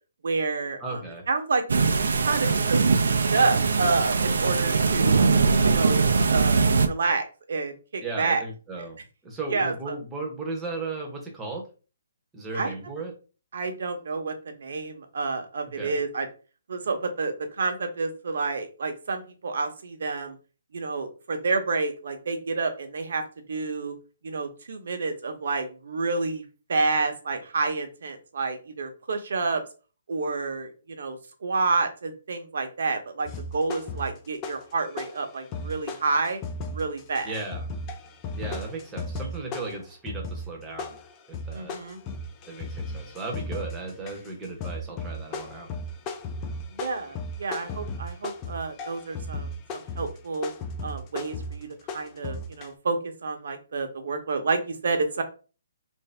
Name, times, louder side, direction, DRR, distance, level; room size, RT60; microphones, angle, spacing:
voice 1, 0.2-1.0 1.3-2.8 3.1-5.3 5.6-8.4 9.5-10.0 12.5-12.7 13.5-16.3 16.7-20.4 20.7-23.2 23.5-23.9 24.2-26.4 26.7-29.6 30.1-36.4 36.7-37.4 41.5-42.0 46.7-50.5 50.8-55.2, right 3 dB, 65° right, 6 dB, 0.9 m, -29 dB
voice 2, 0.8-1.3 8.0-9.0 9.2-11.7 12.3-13.1 15.8-15.9 37.2-37.7 38.3-41.0 41.3-41.8 42.5-45.8, right 3 dB, 10° right, -1 dB, 0.9 m, -36 dB
sound 1, 1.7-6.9, right 4 dB, 80° right, 0.5 m, -21 dB
sound 2, 33.3-34.7 35.0-52.7, left 2 dB, 20° left, 0.4 m, -36 dB
3.2 x 2.7 x 3.3 m, 0.34 s
hypercardioid pair, 165°, 0 cm